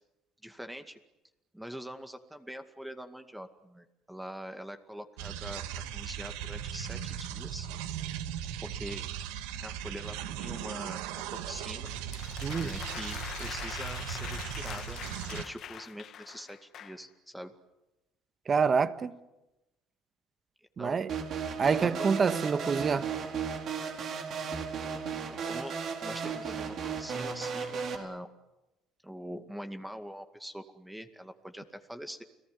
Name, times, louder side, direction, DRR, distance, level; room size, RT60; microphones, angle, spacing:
voice 1, 0.4-1.0 1.5-7.7 8.6-9.0 9.6-11.9 12.3-15.0 15.3-17.5 20.6-21.0 21.8-22.1 25.3-25.8 26.0-28.3 29.0-32.2, equal, 5° right, 2.1 m, -43 dB
sound 1, 5.2-15.4, right 10 dB, 90° right, 1.8 m, -38 dB
sound 2, 11.9-17.0, left 10 dB, 55° left, 1.5 m, -43 dB
voice 2, 12.4-12.7 18.5-19.1 20.8-21.1 21.6-23.1, right 5 dB, 35° right, 1.6 m, -27 dB
sound 3, 21.1-28.0, right 6 dB, 55° right, 4.6 m, -35 dB
30.0 x 19.0 x 9.6 m
supercardioid pair, 100°, 0 cm